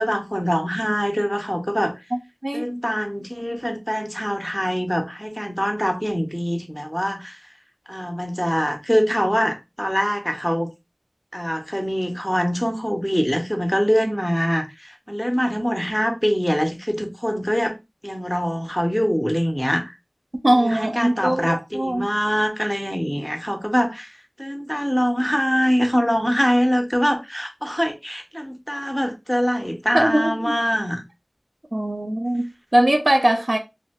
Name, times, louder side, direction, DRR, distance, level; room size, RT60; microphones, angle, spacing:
voice 1, 0.0-1.9 2.5-7.4 7.9-10.7 11.3-17.8 18.0-19.9 20.5-24.1 24.4-31.0, equal, ahead, 0.7 m, -23 dB
voice 2, 20.4-22.1 29.9-30.5 31.7-33.6, right 1 dB, 60° right, 0.6 m, -21 dB
2.6 x 2.1 x 3.5 m
wide cardioid pair, 40°, 0 cm